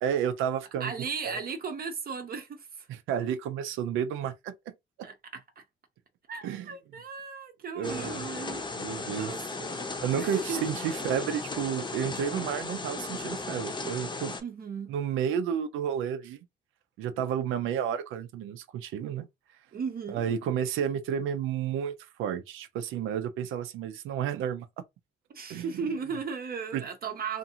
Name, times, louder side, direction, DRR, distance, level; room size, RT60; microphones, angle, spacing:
voice 1, 0.0-0.9 1.2-1.4 2.9-4.7 6.4-6.7 7.7-8.3 8.8-9.3 10.0-14.3 14.9-16.4 17.0-19.3 20.1-24.7 25.5-25.7 26.7-26.8, right 8 dB, 90° right, 0.5 m, -31 dB
voice 2, 0.8-2.9 5.0-5.6 6.3-8.6 8.9-9.8 10.1-10.7 14.4-14.9 19.7-20.2 25.3-27.4, right 5 dB, 50° right, 0.6 m, -36 dB
sound 1, 7.8-14.4, left 3 dB, 25° left, 0.7 m, -36 dB
2.5 x 2.4 x 2.7 m
cardioid pair, 90°, 20 cm